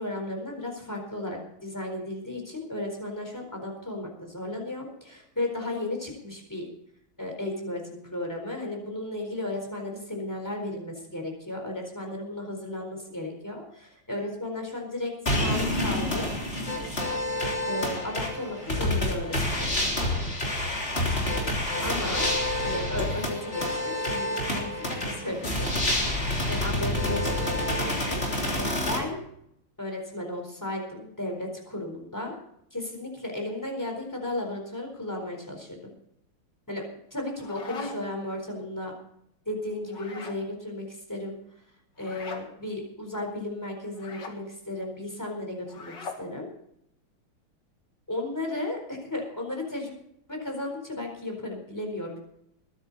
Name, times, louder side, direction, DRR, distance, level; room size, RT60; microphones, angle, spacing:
voice 1, 0.0-6.7 7.2-16.3 17.7-19.9 21.8-22.3 22.6-25.7 26.5-29.2 29.8-32.3 32.7-35.8 36.7-36.8 37.1-38.9 39.5-41.4 42.0-46.5 48.1-49.9 50.3-52.2, left 1 dB, 10° left, 2 dB, 4.2 m, -34 dB
sound 1, 15.3-29.0, left 1 dB, 25° left, 3.7 m, -28 dB
sound 2, 37.1-38.2 39.9-40.4 42.0-42.5 43.9-44.4 45.7-46.3, left 3 dB, 55° left, 2.5 m, -40 dB
21.0 x 10.5 x 4.1 m, 0.76 s
omnidirectional pair, 2.3 m